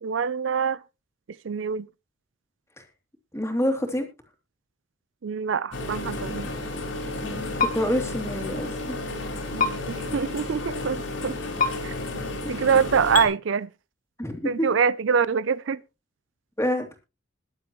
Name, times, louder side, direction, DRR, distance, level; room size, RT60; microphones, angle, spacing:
voice 1, 0.0-0.8 1.4-1.9 5.2-6.5 9.5-11.4 11.8-11.9 12.5-13.7 14.4-15.8, right 6 dB, 75° right, 0.5 m, -25 dB
voice 2, 3.3-4.1 7.2-9.0 12.4-12.6 14.2-14.7 16.6-17.0, equal, 15° left, 2.9 m, -27 dB
sound 1, 5.7-13.3, left 2 dB, 80° left, 5.7 m, -32 dB
sound 2, 7.6-7.7 9.6-9.7 11.6-11.7 13.1-13.3, left 5 dB, 45° left, 2.0 m, -22 dB
21.5 x 7.7 x 3.1 m
head